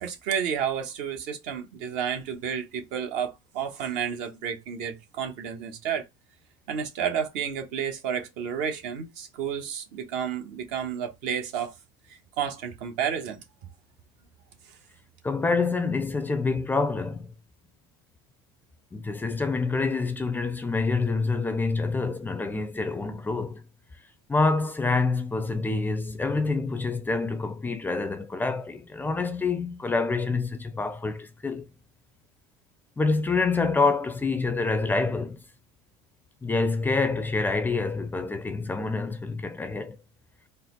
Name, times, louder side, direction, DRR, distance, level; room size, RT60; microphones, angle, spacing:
voice 1, 0.0-6.1 6.7-11.7 12.1-13.4, right 8 dB, 65° right, 1.1 m, -31 dB
voice 2, 15.2-17.3 18.9-23.6 24.3-31.6 33.0-35.4 36.4-40.0, left 3 dB, 15° left, 0.5 m, -27 dB
4.0 x 2.1 x 3.8 m
supercardioid pair, 110°, 14 cm